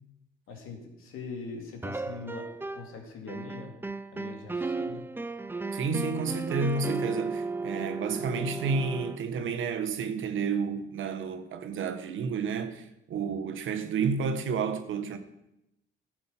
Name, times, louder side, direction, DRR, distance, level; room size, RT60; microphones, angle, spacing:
voice 1, 0.5-2.5 2.7-3.7 4.1-5.0, left 4 dB, 90° left, 2.6 m, -42 dB
sound 1, 1.8-3.0 3.3-9.2, right 3 dB, 10° right, 0.5 m, -35 dB
voice 2, 5.7-15.2, right 5 dB, 70° right, 1.3 m, -31 dB
12.5 x 7.6 x 5.7 m
cardioid pair, 95°, 21 cm